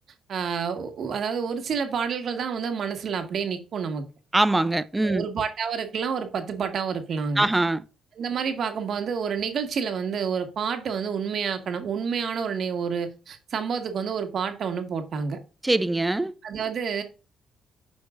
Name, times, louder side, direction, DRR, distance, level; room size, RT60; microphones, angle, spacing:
voice 1, 0.3-4.0 5.0-7.5 8.1-15.4 16.4-17.0, right 6 dB, 60° right, 1.6 m, -29 dB
voice 2, 4.3-5.2 7.4-7.8 15.6-16.3, right 2 dB, 15° right, 0.6 m, -22 dB
12.5 x 5.2 x 2.5 m
cardioid pair, 90°, 0 cm